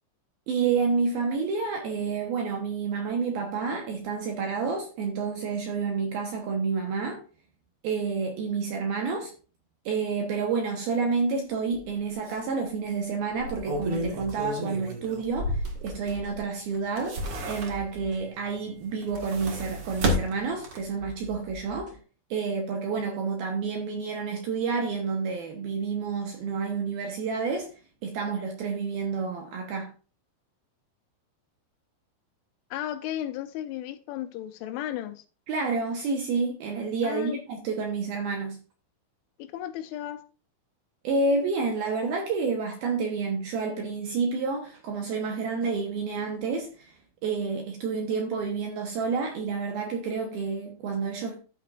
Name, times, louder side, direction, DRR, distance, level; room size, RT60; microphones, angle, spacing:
voice 1, 0.5-7.2 7.8-9.3 9.9-21.9 22.3-27.7 28.0-29.9 35.5-38.6 41.0-46.9 47.2-51.4, right 4 dB, 70° right, 2.4 m, -29 dB
sound 1, 11.7-11.9 12.3-12.4 13.3-16.4 16.7-18.1 18.9-21.0 21.4-21.5, equal, 90° right, 1.2 m, -32 dB
sound 2, 13.4-22.0, left 2 dB, 25° right, 2.0 m, -48 dB
voice 2, 32.7-35.2 37.0-37.4 39.4-40.2, left 12 dB, 80° left, 3.0 m, -34 dB
12.0 x 8.5 x 2.5 m
omnidirectional pair, 5.7 m